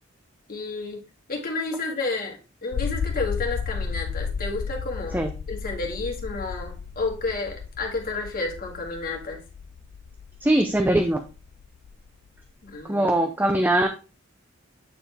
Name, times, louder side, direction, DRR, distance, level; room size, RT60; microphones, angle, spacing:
voice 1, 0.5-1.0 1.3-5.2 5.5-9.4 12.6-13.1, left 3 dB, 45° left, 1 dB, 1.8 m, -31 dB
sound 1, 2.7-12.8, left 6 dB, 65° left, 0.3 m, -33 dB
voice 2, 10.4-11.2 12.9-13.9, right 1 dB, 10° right, 6 dB, 0.5 m, -21 dB
9.1 x 4.2 x 3.3 m, 0.33 s
head